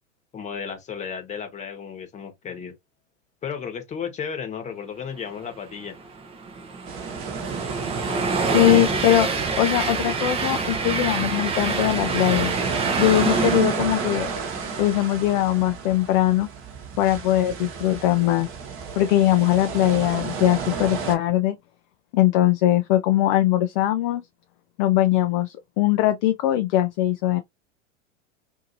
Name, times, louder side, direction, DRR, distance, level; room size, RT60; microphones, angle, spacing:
voice 1, 0.3-2.7 3.4-6.0, left 6 dB, 20° left, 1.0 m, -33 dB
Train, 5.7-15.2, right 4 dB, 15° right, 0.5 m, -27 dB
sound 1, 6.9-21.2, right 5 dB, 35° right, 1.0 m, -32 dB
voice 2, 8.5-9.3 9.6-12.5 13.0-14.3 14.8-16.5 17.0-18.5 19.0-21.6 22.1-24.2 24.8-27.4, left 14 dB, 40° left, 0.4 m, -21 dB
2.7 x 2.6 x 2.6 m
hypercardioid pair, 105°, 38 cm